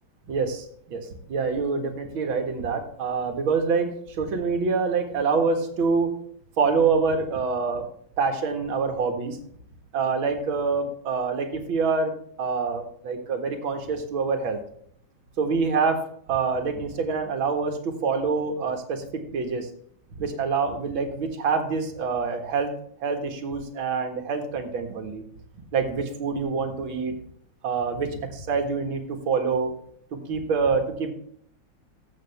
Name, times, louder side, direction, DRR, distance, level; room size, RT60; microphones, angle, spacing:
voice 1, 0.3-6.2 6.6-7.9 8.2-9.4 9.9-12.1 12.4-14.6 15.4-19.7 20.2-22.7 23.0-25.2 25.7-27.2 27.6-29.7 30.3-31.1, right 5 dB, 75° right, 4 dB, 2.4 m, -26 dB
14.0 x 7.5 x 3.4 m, 0.66 s
omnidirectional pair, 2.2 m